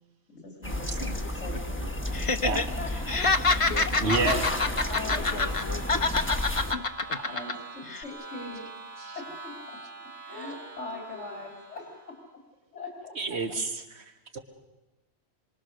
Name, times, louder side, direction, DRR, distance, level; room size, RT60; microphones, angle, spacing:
voice 1, 0.3-3.2 3.8-3.9 4.2-5.4 7.1-8.7 9.1-9.8 10.2-11.9 12.3-12.4 12.7-13.4, left 2 dB, 85° left, 1 dB, 3.0 m, -41 dB
sound 1, 0.6-6.7, left 1 dB, 10° left, 1.2 m, -32 dB
voice 2, 1.0-1.6 3.5-6.1 6.7-7.2 7.9-8.0 11.1-11.5, left 4 dB, 70° left, 3 dB, 1.3 m, -41 dB
Laughter, 2.1-2.6 2.9-5.6 5.9-7.5 7.9-8.0, left 3 dB, 30° left, 1.0 m, -26 dB
sound 2, 2.6-12.2, right 2 dB, 90° right, 3.9 m, -45 dB
voice 3, 4.0-4.4 9.0-9.2 13.2-14.4, right 3 dB, 65° right, 6 dB, 2.0 m, -29 dB
27.5 x 23.5 x 6.5 m, 1.1 s
omnidirectional pair, 1.2 m